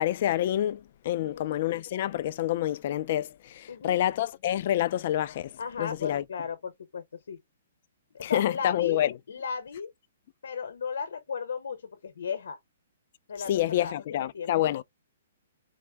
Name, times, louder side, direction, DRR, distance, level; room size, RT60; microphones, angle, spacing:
voice 1, 0.0-5.5 5.8-6.2 8.2-9.1 13.5-14.8, left 12 dB, 50° left, 0.3 m, -27 dB
voice 2, 1.2-1.5 3.7-4.0 5.6-7.4 8.1-9.9 10.4-12.6 13.3-14.7, left 6 dB, 85° left, 0.9 m, -36 dB
4.4 x 2.1 x 3.3 m
hypercardioid pair, 150°, 0 cm